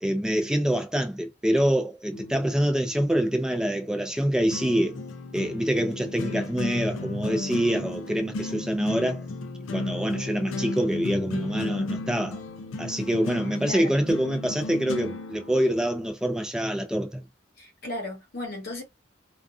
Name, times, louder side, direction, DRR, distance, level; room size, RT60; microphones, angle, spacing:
voice 1, 0.0-5.0 5.3-9.2 9.7-12.4 12.8-17.2, equal, 5° right, 0.4 m, -25 dB
sound 1, 2.1-16.1, left 2 dB, 80° left, 0.4 m, -35 dB
voice 2, 13.6-13.9 17.6-18.8, left 1 dB, 50° left, 0.9 m, -35 dB
2.5 x 2.4 x 2.3 m
head